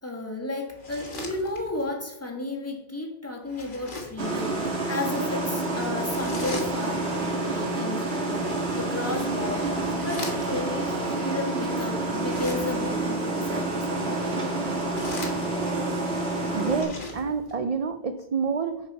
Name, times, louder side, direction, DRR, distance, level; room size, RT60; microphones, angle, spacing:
voice 1, 0.0-14.7, left 2 dB, 15° left, 0 dB, 1.3 m, -33 dB
sound 1, 0.7-1.9 3.4-4.3 6.0-7.1 8.9-10.8 12.1-13.0 14.6-15.9 16.5-17.6, left 2 dB, 50° left, 1.5 m, -40 dB
sound 2, 4.2-16.8, right 2 dB, 80° right, 1.8 m, -28 dB
voice 2, 16.5-18.8, right 5 dB, 50° right, 8 dB, 0.5 m, -28 dB
10.5 x 4.7 x 4.5 m, 0.87 s
omnidirectional pair, 1.1 m